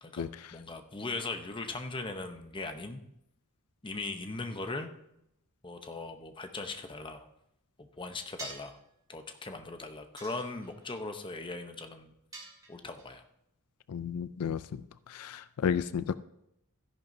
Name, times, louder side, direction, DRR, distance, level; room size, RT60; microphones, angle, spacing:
voice 1, 0.0-3.0 3.8-4.9 5.6-7.3 7.8-8.8 9.1-12.1 12.7-13.2, left 3 dB, 20° left, 6 dB, 0.8 m, -39 dB
sound 1, 8.4-8.8 10.2-10.9 12.3-13.1, right 3 dB, 15° right, 2.8 m, -45 dB
voice 2, 13.9-14.6 15.1-16.2, left 7 dB, 80° left, 14 dB, 0.4 m, -32 dB
13.5 x 10.5 x 2.7 m, 0.81 s
head